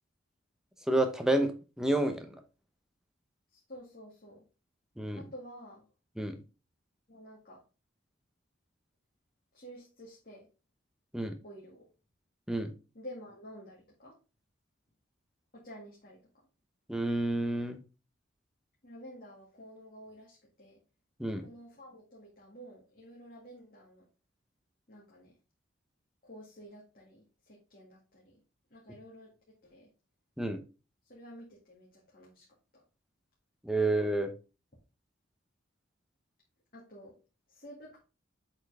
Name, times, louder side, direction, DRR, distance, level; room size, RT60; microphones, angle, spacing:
voice 1, 0.9-2.3 5.0-5.2 6.2-6.4 11.1-11.3 12.5-12.7 16.9-17.8 21.2-21.5 30.4-30.6 33.6-34.3, right 1 dB, 5° right, 6 dB, 0.8 m, -29 dB
voice 2, 3.5-4.4 5.2-5.8 7.1-7.6 9.5-10.5 11.4-11.8 12.9-14.1 15.5-16.2 18.8-20.8 21.4-24.0 24.9-25.3 26.2-28.4 28.7-29.3 29.6-29.9 31.1-32.4 32.7-32.8 36.7-37.1 37.5-38.0, equal, 45° left, -5 dB, 2.2 m, -50 dB
7.9 x 4.4 x 3.4 m, 0.32 s
head